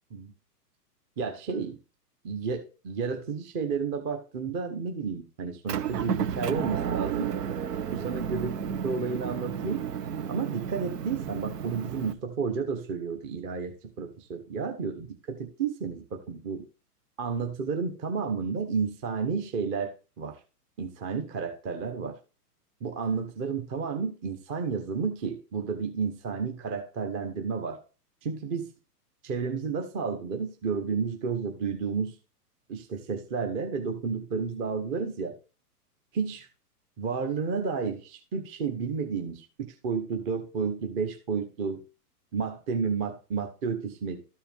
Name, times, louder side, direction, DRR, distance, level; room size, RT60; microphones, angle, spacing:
voice 1, 1.2-1.8 2.2-7.3 7.9-9.8 10.3-16.6 17.2-20.4 20.8-22.2 22.8-27.8 28.2-28.7 29.2-32.2 32.7-35.3 36.1-36.5 37.0-41.8 42.3-44.2, right 5 dB, 25° right, 5 dB, 0.9 m, -31 dB
Motor vehicle (road) / Engine, 5.7-12.1, right 8 dB, 75° right, 1.0 m, -32 dB
13.0 x 4.6 x 3.6 m, 0.33 s
hypercardioid pair, 130°, 48 cm